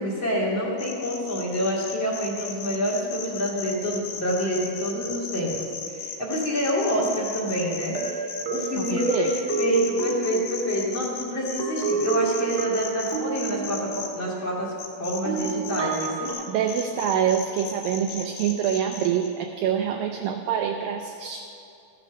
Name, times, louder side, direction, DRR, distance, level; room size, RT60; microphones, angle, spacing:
voice 1, 0.0-14.7 15.0-16.4, equal, 35° left, -3 dB, 2.6 m, -27 dB
sound 1, 0.8-14.1 14.8-16.4 16.7-19.3, left 6 dB, 80° left, 3.3 m, -36 dB
sound 2, 6.8-6.9 7.9-11.1 11.6-14.2 15.2-16.3, right 6 dB, 50° right, 1.7 m, -30 dB
voice 2, 8.8-9.3 16.5-21.4, right 9 dB, 85° right, 4 dB, 2.0 m, -26 dB
14.0 x 9.1 x 6.2 m, 2.6 s
omnidirectional pair, 4.7 m